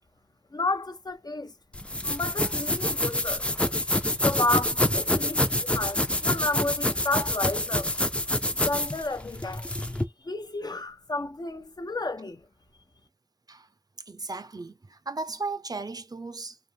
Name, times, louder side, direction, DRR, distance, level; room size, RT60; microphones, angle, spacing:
voice 1, 0.5-1.5 2.0-3.5 3.7-3.8 4.2-7.9 8.4-9.8 10.2-12.4, left 2 dB, 60° left, 0.6 m, -31 dB
sound 1, 1.7-10.0, left 1 dB, 15° left, 0.4 m, -27 dB
voice 2, 14.1-16.6, right 3 dB, 55° right, 0.5 m, -36 dB
3.3 x 2.0 x 2.6 m
wide cardioid pair, 55°, 8 cm